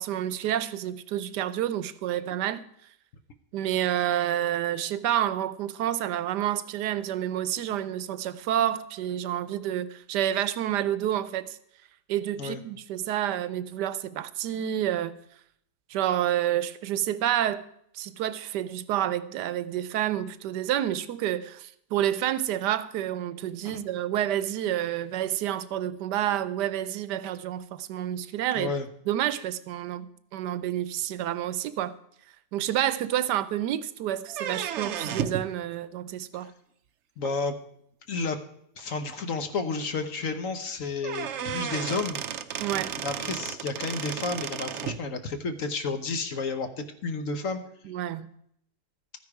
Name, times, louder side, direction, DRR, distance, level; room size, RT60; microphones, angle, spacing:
voice 1, 0.0-2.6 3.5-11.6 12.1-15.1 15.9-17.6 17.9-28.7 29.1-31.9 32.5-36.5 42.6-42.9 47.8-48.3, right 11 dB, 85° right, 1.2 m, -29 dB
voice 2, 28.6-28.9 37.2-37.6 38.1-38.4 38.8-42.2 43.0-47.6, left 4 dB, 55° left, 1.2 m, -31 dB
sound 1, 34.3-35.5 37.2-37.3 38.3-38.4 38.8-38.9 39.2-39.3 40.6-40.7 41.0-45.0, right 8 dB, 65° right, 0.7 m, -33 dB
13.5 x 9.7 x 4.8 m
omnidirectional pair, 1.8 m